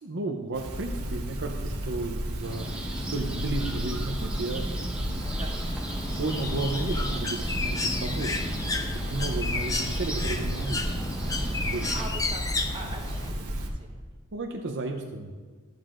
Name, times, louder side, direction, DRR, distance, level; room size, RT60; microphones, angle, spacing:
voice 1, 0.0-2.7 3.1-4.7 6.2-8.4 8.6-10.8 11.6-11.9 14.3-15.3, right 2 dB, 55° right, 2 dB, 0.6 m, -33 dB
sound 1, 0.5-13.7, equal, 85° right, 1.2 m, -33 dB
sound 2, 2.4-12.1, right 1 dB, 5° right, 1.0 m, -37 dB
Bird, 5.2-13.3, left 3 dB, 15° left, 0.5 m, -33 dB
voice 2, 11.9-13.9, right 2 dB, 25° right, -1 dB, 1.2 m, -42 dB
13.0 x 9.0 x 2.5 m, 1.5 s
head